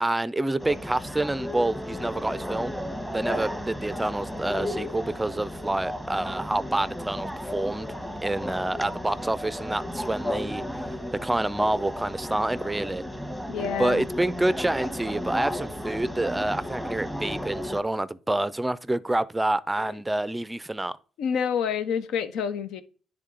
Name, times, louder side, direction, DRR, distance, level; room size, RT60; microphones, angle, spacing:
voice 1, 0.0-2.7 3.1-7.9 8.2-10.9 11.2-13.0 13.8-21.0, right 1 dB, 10° right, 0.4 m, -27 dB
sound 1, 0.6-17.8, equal, 5° left, 1.0 m, -34 dB
voice 2, 13.5-14.0 21.2-22.8, left 7 dB, 85° left, 0.8 m, -28 dB
10.0 x 3.6 x 3.7 m
cardioid pair, 90°, 0 cm